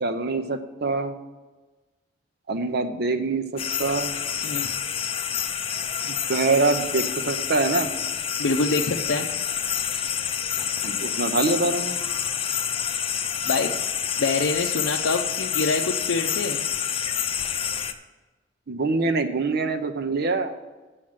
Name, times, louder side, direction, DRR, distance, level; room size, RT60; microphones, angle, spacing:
voice 1, 0.0-1.1 2.5-4.1 6.3-7.9 10.8-12.0 18.7-20.5, right 3 dB, 55° right, 8 dB, 0.6 m, -24 dB
sound 1, 3.6-17.9, left 8 dB, 30° left, 0.5 m, -28 dB
voice 2, 4.4-4.7 8.4-9.3 13.5-13.8 14.2-16.6, left 3 dB, 80° left, 1 dB, 0.6 m, -25 dB
7.5 x 6.4 x 7.4 m, 1.2 s
head